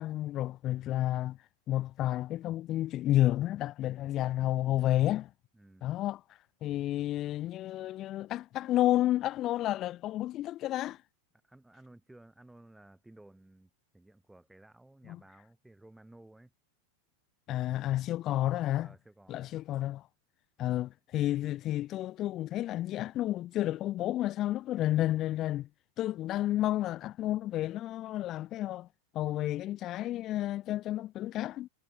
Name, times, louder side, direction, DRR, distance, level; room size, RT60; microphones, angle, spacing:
voice 1, 0.0-1.4 1.7-5.3 5.8-6.2 6.6-11.0 15.1-15.2 17.5-18.9 19.3-20.1 20.6-25.7 26.0-28.9 29.1-31.7, left 14 dB, 35° left, 0.8 m, -31 dB
voice 2, 5.5-5.9 11.4-16.5 18.8-19.6, right 1 dB, 5° right, 8.0 m, -56 dB
supercardioid pair, 140°, 0 cm